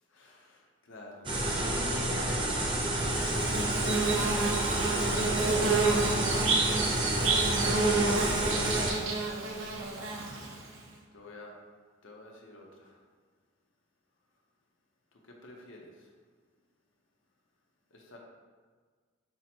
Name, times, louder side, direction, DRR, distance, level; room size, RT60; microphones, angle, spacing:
voice 1, 0.1-4.9 7.4-8.0 11.1-11.6 12.0-13.0 15.1-16.1 17.9-18.2, left 1 dB, 65° left, 0 dB, 0.7 m, -52 dB
sound 1, 1.2-8.9, right 1 dB, 25° right, 0.5 m, -29 dB
Bird / Buzz, 3.1-10.8, right 3 dB, 65° right, 0.6 m, -29 dB
5.6 x 2.0 x 4.3 m, 1.5 s
head